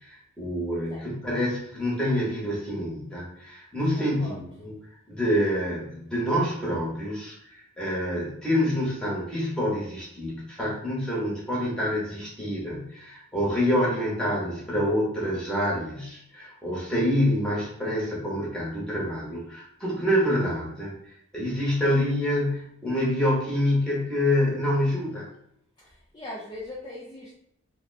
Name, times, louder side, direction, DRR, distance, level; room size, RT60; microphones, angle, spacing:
voice 1, 0.1-4.8 5.1-7.3 7.8-20.9 21.3-25.3, equal, 5° left, -6 dB, 1.1 m, -27 dB
voice 2, 4.0-4.4 25.8-27.3, left 1 dB, 20° left, -5 dB, 0.5 m, -40 dB
2.8 x 2.2 x 3.9 m, 0.73 s
head